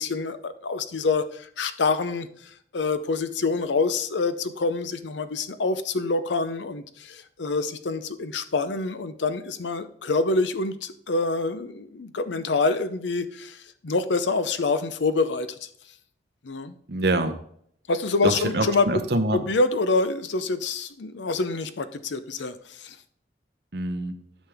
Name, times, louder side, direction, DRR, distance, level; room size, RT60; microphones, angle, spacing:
voice 1, 0.0-2.3 2.7-15.7 16.4-16.8 17.9-19.0 19.3-23.0, left 3 dB, 80° left, 12 dB, 0.6 m, -26 dB
voice 2, 16.9-17.3 18.2-19.4 23.7-24.1, right 2 dB, 60° right, 7 dB, 0.8 m, -25 dB
10.0 x 6.2 x 3.5 m, 0.66 s
head